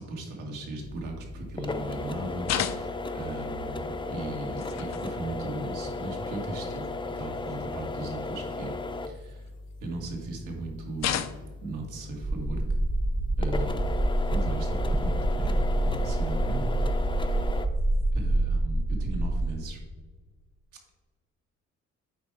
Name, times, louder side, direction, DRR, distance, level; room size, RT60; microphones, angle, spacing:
voice 1, 0.0-8.7 9.1-9.5 9.8-11.2 11.6-12.6 13.4-13.8 14.3-16.7 17.1-17.4 18.1-19.8, right 2 dB, 85° right, 1 dB, 1.9 m, -37 dB
sound 1, 0.8-17.7, left 3 dB, 15° left, 0.6 m, -36 dB
sound 2, 2.4-3.2 4.5-5.1 6.1-6.2 6.7-6.8 9.0-9.8 11.0-11.7 13.4-13.6 15.2-15.3 16.5-16.6 17.8-18.1, left 10 dB, 60° left, 0.6 m, -33 dB
sound 3, 12.2-19.5, right 1 dB, 25° right, 0.9 m, -27 dB
8.4 x 4.9 x 4.6 m, 1.4 s
cardioid pair, 90°, 30 cm